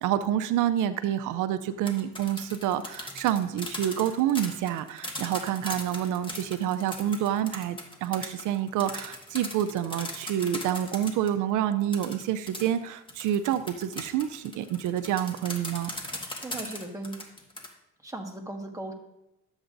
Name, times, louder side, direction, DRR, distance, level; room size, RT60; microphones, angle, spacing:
voice 1, 0.0-15.9, right 11 dB, 85° right, 11 dB, 0.5 m, -28 dB
sound 1, 1.7-11.3 11.9-17.7, left 1 dB, 15° left, 1.6 m, -38 dB
voice 2, 16.1-17.2 18.0-18.9, right 2 dB, 10° right, 1 dB, 1.5 m, -38 dB
12.0 x 7.9 x 2.6 m, 0.90 s
cardioid pair, 90°, 30 cm